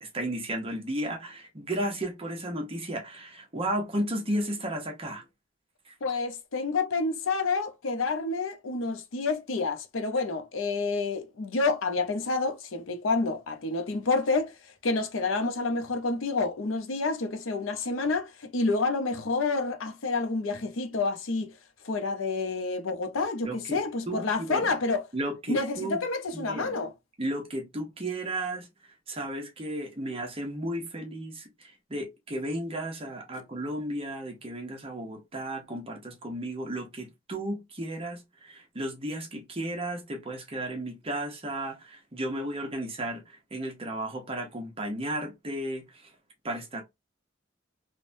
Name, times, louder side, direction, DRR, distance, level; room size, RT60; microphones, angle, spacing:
voice 1, 0.0-5.2 5.9-6.0 23.4-23.8 24.1-24.7 25.1-26.0 26.3-26.8 27.2-28.7 29.1-46.1 46.4-46.8, right 1 dB, 30° right, 0.7 m, -34 dB
voice 2, 6.0-14.5 14.8-21.5 21.8-25.0 25.5-26.9, left 3 dB, 85° left, 0.6 m, -29 dB
3.3 x 2.1 x 2.5 m
head